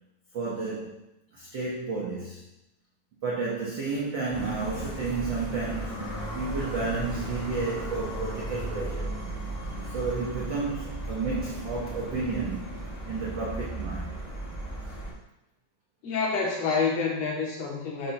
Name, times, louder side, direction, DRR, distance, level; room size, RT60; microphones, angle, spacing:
voice 1, 0.3-1.0 1.3-2.4 3.2-6.0 6.3-9.2 9.9-12.7 13.0-14.1, right 4 dB, 75° right, -5 dB, 1.0 m, -31 dB
sound 1, 4.3-15.1, right 1 dB, 15° left, 1.0 m, -35 dB
voice 2, 16.0-18.1, left 4 dB, 65° left, -2 dB, 2.2 m, -28 dB
4.9 x 4.2 x 5.3 m, 0.86 s
omnidirectional pair, 3.5 m